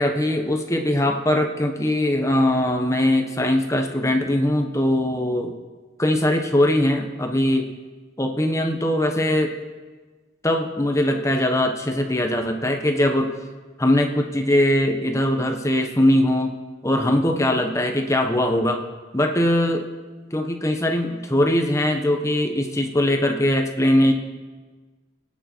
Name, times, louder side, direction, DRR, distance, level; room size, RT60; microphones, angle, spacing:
voice 1, 0.0-5.5 6.0-7.7 8.2-9.5 10.4-13.3 13.8-16.5 16.8-18.8 19.1-19.8 20.3-24.1, left 1 dB, 15° left, 4 dB, 1.1 m, -21 dB
26.0 x 9.5 x 4.6 m, 1.3 s
head